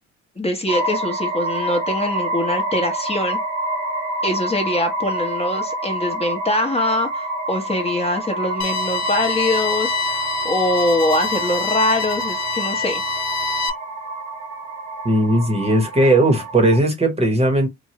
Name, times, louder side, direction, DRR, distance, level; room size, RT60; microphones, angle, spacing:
voice 1, 0.4-3.4 4.2-13.0, left 1 dB, 20° left, 0.9 m, -23 dB
sound 1, 0.7-16.8, right 1 dB, 85° right, 0.9 m, -28 dB
sound 2, 8.6-13.7, left 2 dB, 60° left, 0.6 m, -25 dB
voice 2, 15.0-17.7, right 1 dB, 20° right, 1.0 m, -17 dB
3.1 x 2.2 x 2.8 m
cardioid pair, 90°, 30 cm